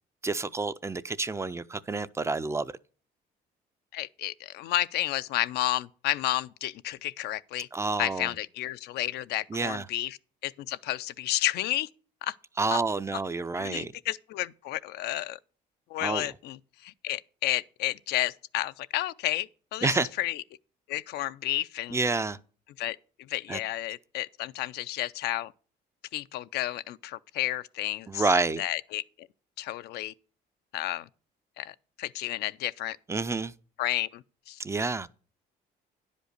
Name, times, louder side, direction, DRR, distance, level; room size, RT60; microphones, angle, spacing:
voice 1, 0.2-2.7 7.7-8.3 9.5-9.9 12.6-13.9 16.0-16.3 19.8-20.1 21.9-22.4 23.5-23.6 28.1-28.6 33.1-33.5 34.6-35.1, right 3 dB, 15° right, 0.4 m, -28 dB
voice 2, 3.9-7.7 8.0-10.2 10.4-11.9 12.2-12.3 12.7-12.8 13.6-15.4 15.9-20.4 20.9-22.0 22.8-23.0 23.3-25.5 26.1-28.3 28.6-29.0 29.6-30.1 30.7-31.1 31.6-33.0 33.8-34.6, left 15 dB, 75° left, 0.4 m, -31 dB
10.0 x 5.2 x 6.5 m
cardioid pair, 110°, 17 cm